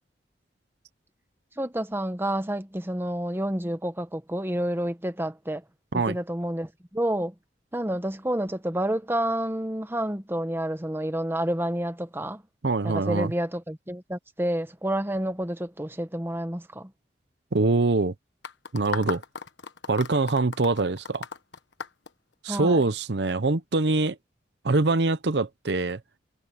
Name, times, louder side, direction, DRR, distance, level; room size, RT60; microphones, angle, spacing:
voice 1, 1.6-5.6 5.9-7.3 7.7-12.4 12.8-16.9 22.5-22.8, right 1 dB, 15° right, 1.1 m, -29 dB
voice 2, 12.6-13.3 17.5-18.1 18.7-19.2 19.9-21.3 22.4-24.2 24.6-26.0, right 3 dB, 65° right, 0.8 m, -24 dB
sound 1, 18.4-22.8, left 5 dB, 80° left, 1.3 m, -36 dB
head